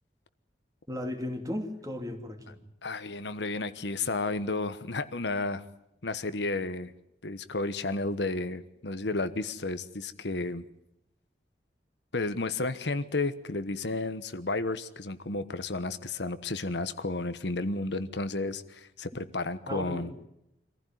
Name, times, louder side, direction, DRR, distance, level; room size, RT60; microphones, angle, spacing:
voice 1, 0.9-2.6 19.7-20.3, left 1 dB, 20° right, 4 dB, 3.0 m, -36 dB
voice 2, 2.8-5.6 6.0-6.9 7.2-10.6 12.1-20.1, left 2 dB, 75° left, 12 dB, 1.2 m, -32 dB
25.5 x 15.5 x 9.2 m, 0.81 s
head